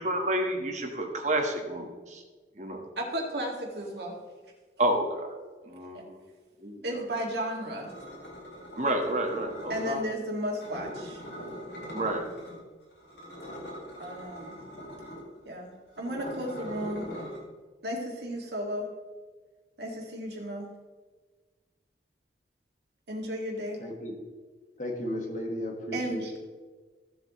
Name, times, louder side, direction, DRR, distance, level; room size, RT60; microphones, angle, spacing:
voice 1, 0.0-2.2 2.6-2.8 4.8-5.3 5.6-6.2 6.6-7.0 8.8-10.0 11.9-12.2, right 1 dB, 40° right, 3 dB, 1.5 m, -30 dB
voice 2, 3.0-4.2 5.9-6.0 6.8-7.9 9.7-11.2 14.0-14.6 15.5-15.7 16.0-17.1 17.8-18.9 19.8-20.7 23.1-23.8 25.9-26.4, equal, 70° right, -1 dB, 2.2 m, -34 dB
sound 1, 7.8-10.0 10.6-12.6 12.9-17.4, equal, 85° left, 3.7 m, -42 dB
voice 3, 23.8-24.1 24.8-26.4, left 1 dB, 45° left, 2 dB, 1.7 m, -34 dB
15.0 x 7.8 x 3.2 m, 1.4 s
head